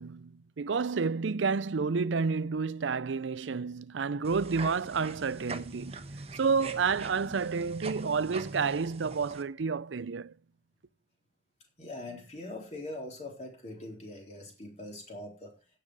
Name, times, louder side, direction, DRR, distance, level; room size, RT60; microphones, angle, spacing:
voice 1, 0.0-6.0 6.4-10.3, right 5 dB, 85° right, 0.5 m, -30 dB
sound 1, 4.2-9.4, right 3 dB, 35° right, 1.1 m, -43 dB
voice 2, 11.8-15.5, left 1 dB, 35° left, 4.0 m, -42 dB
16.5 x 7.0 x 4.8 m
head